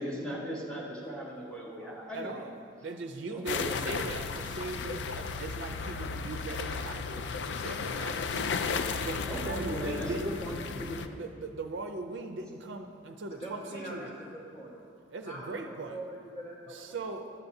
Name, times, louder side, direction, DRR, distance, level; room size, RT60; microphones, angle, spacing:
voice 1, 0.0-2.3 3.3-3.8 9.3-11.2, equal, 5° left, -5 dB, 1.4 m, -37 dB
voice 2, 2.1-8.4 9.0-10.4 10.9-14.1 15.1-16.0 16.7-17.3, right 3 dB, 65° right, 5 dB, 0.5 m, -40 dB
sound 1, 3.5-11.1, left 5 dB, 60° left, 0.3 m, -34 dB
voice 3, 13.4-14.7 15.2-16.9, right 1 dB, 30° left, -6 dB, 1.6 m, -43 dB
12.0 x 6.9 x 2.7 m, 2.3 s
head